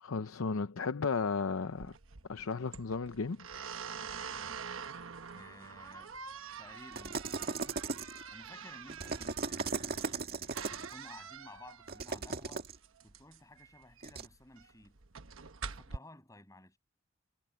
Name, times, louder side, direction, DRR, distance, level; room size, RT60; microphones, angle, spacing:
voice 1, 0.0-1.9 2.3-3.5, left 4 dB, 85° left, 0.7 m, -34 dB
sound 1, 1.7-16.0, right 6 dB, 75° right, 1.1 m, -46 dB
voice 2, 5.3-6.1 6.6-12.6 13.0-15.0 15.6-16.8, left 1 dB, 15° left, 7.5 m, -55 dB
sound 2, 6.9-8.3 8.9-10.9 11.9-12.8 14.0-14.3, right 4 dB, 50° right, 1.9 m, -37 dB
head